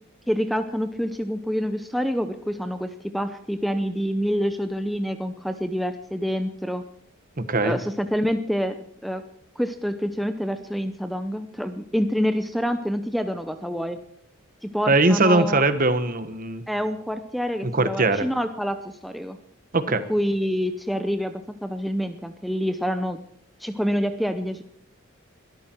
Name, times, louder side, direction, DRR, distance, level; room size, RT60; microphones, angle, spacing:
voice 1, 0.3-6.8 7.6-8.8 9.0-9.2 9.6-14.0 14.6-15.6 16.7-19.4 20.1-23.2 23.6-24.6, equal, ahead, 9 dB, 0.7 m, -27 dB
voice 2, 7.4-7.8 14.9-16.6 17.6-18.3 19.7-20.0, right 2 dB, 40° right, 11 dB, 1.3 m, -21 dB
22.0 x 13.5 x 4.6 m, 0.68 s
head